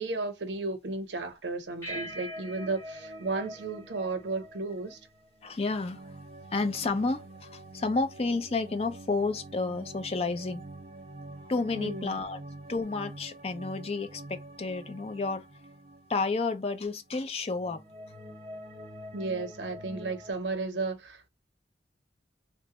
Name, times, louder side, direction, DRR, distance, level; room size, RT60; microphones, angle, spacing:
voice 1, 0.0-5.0 11.8-12.2 19.1-21.3, right 3 dB, 85° right, 0.7 m, -34 dB
sound 1, 1.8-4.6, right 1 dB, 15° left, 2.0 m, -44 dB
sound 2, 1.9-17.1 17.4-20.3, right 1 dB, 35° right, 0.8 m, -46 dB
voice 2, 5.4-6.0 6.5-10.6 11.5-12.4 12.7-15.5 16.1-17.8, left 3 dB, 35° left, 0.4 m, -31 dB
3.1 x 2.2 x 2.8 m
head